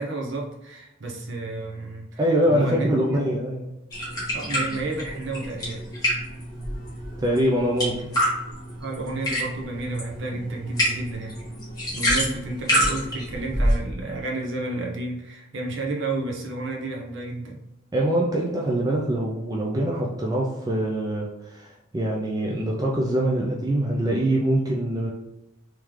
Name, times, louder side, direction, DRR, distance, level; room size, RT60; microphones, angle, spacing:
voice 1, 0.0-3.0 4.3-5.8 8.8-11.4 11.9-17.6, right 2 dB, 55° right, 0 dB, 0.8 m, -31 dB
voice 2, 2.2-3.6 7.2-8.1 17.9-25.1, right 1 dB, 15° right, -3 dB, 0.3 m, -24 dB
sound 1, 3.9-13.8, equal, 15° left, 1.3 m, -27 dB
3.6 x 3.1 x 3.1 m, 0.90 s
head